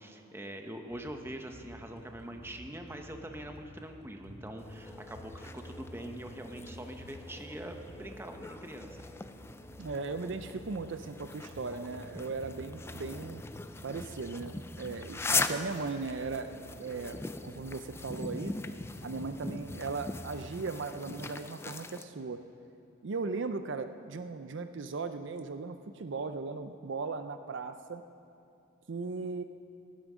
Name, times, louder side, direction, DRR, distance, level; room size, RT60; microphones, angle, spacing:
voice 1, 0.0-9.0, right 1 dB, 10° right, 4 dB, 0.8 m, -44 dB
sound 1, 0.9-20.6, equal, 85° left, 3.8 m, -51 dB
sound 2, 4.6-22.0, left 3 dB, 10° left, 0.3 m, -40 dB
voice 2, 9.8-13.4 13.8-16.5 16.8-18.5 19.0-22.4 23.0-28.0 28.9-29.4, right 4 dB, 60° right, 9 dB, 0.5 m, -37 dB
16.5 x 11.5 x 6.2 m, 2.6 s
head